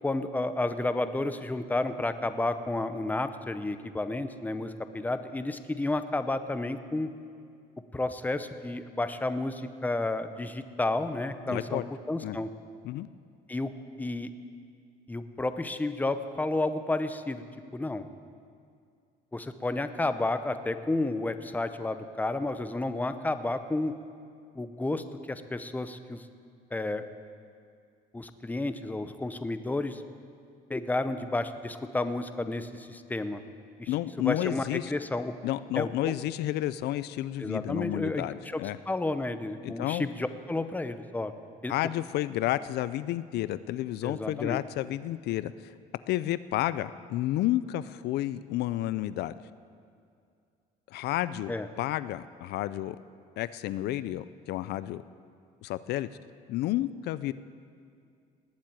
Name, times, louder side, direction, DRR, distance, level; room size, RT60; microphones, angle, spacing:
voice 1, 0.0-7.1 7.9-12.5 13.5-13.7 14.0-14.3 15.1-17.4 17.7-18.1 19.3-23.9 24.5-26.2 26.7-27.0 28.1-30.0 30.7-33.4 33.8-33.9 34.2-35.3 35.8-36.1 37.4-41.3 41.6-41.7 44.0-44.6 51.5-51.7, left 2 dB, 10° left, 10 dB, 0.8 m, -31 dB
voice 2, 11.5-11.9 12.2-12.4 12.8-13.1 33.9-34.9 35.4-38.8 39.6-40.1 41.7-45.7 46.1-49.4 50.9-53.0 53.4-55.0 55.6-56.1 56.5-57.3, left 14 dB, 75° left, 15 dB, 0.5 m, -31 dB
19.0 x 7.5 x 8.9 m, 2.4 s
cardioid pair, 110°, 17 cm